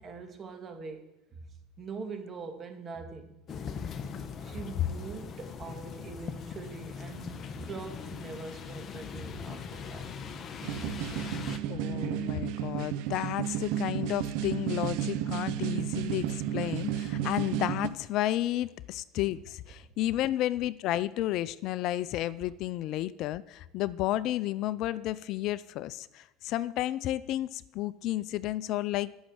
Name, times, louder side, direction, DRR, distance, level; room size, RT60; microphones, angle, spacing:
voice 1, 0.0-1.4 1.8-3.3 4.4-10.1 10.7-10.9, right 4 dB, 35° right, 5 dB, 2.3 m, -43 dB
sound 1, 3.5-11.6, left 6 dB, 40° left, 1.1 m, -40 dB
sound 2, 10.6-17.9, right 10 dB, 70° right, 0.8 m, -32 dB
voice 2, 11.7-29.1, left 14 dB, 60° left, 18 dB, 0.4 m, -32 dB
11.0 x 6.4 x 7.7 m, 0.90 s
supercardioid pair, 95°, 0 cm